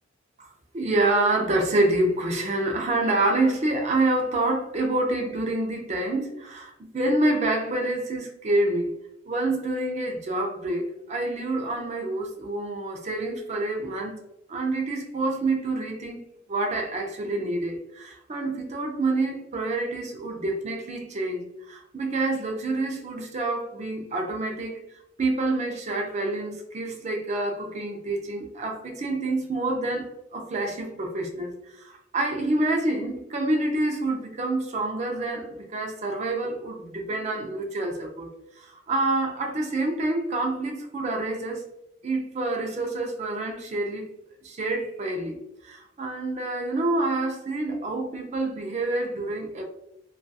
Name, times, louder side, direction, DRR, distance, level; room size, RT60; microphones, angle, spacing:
voice 1, 0.7-8.9 9.3-14.2 14.5-16.2 16.5-24.8 25.2-38.3 38.6-41.6 42.0-44.1 44.4-45.4 45.6-49.6, right 2 dB, 35° right, 2 dB, 0.4 m, -27 dB
2.4 x 2.3 x 2.6 m, 0.83 s
head